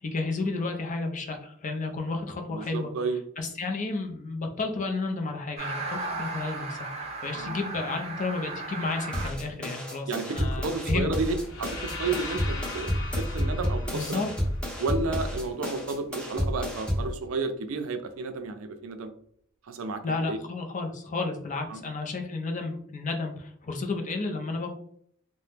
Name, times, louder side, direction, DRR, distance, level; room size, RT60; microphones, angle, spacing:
voice 1, 0.0-2.9 3.4-11.1 13.9-14.3 20.0-24.7, left 3 dB, 40° left, 3 dB, 0.5 m, -32 dB
voice 2, 2.5-3.2 7.4-7.6 10.1-14.2 14.8-19.1 19.7-20.4 21.7-21.8, right 3 dB, 75° right, 8 dB, 0.4 m, -32 dB
sound 1, 5.6-9.3, right 3 dB, 30° right, 0.8 m, -35 dB
sound 2, 9.1-17.1, equal, 5° left, 0.8 m, -30 dB
sound 3, 11.4-15.4, left 3 dB, 85° left, 0.7 m, -39 dB
2.8 x 2.1 x 3.3 m, 0.65 s
head